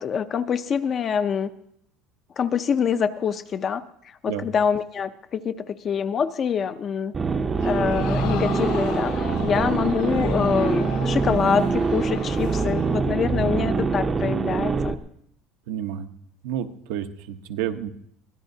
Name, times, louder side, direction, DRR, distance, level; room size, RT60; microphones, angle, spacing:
voice 1, 0.0-1.5 2.4-3.8 4.2-7.1 7.6-15.0, left 7 dB, 25° left, 12 dB, 0.5 m, -25 dB
sound 1, 7.1-14.9, right 4 dB, 15° right, 0.6 m, -24 dB
Crowd, 7.6-13.1 13.5-13.6, left 10 dB, 75° left, 3.2 m, -37 dB
voice 2, 15.7-16.1 16.4-17.9, right 10 dB, 90° right, 7 dB, 0.9 m, -30 dB
23.0 x 17.0 x 2.7 m, 0.73 s
cardioid pair, 170°, 0 cm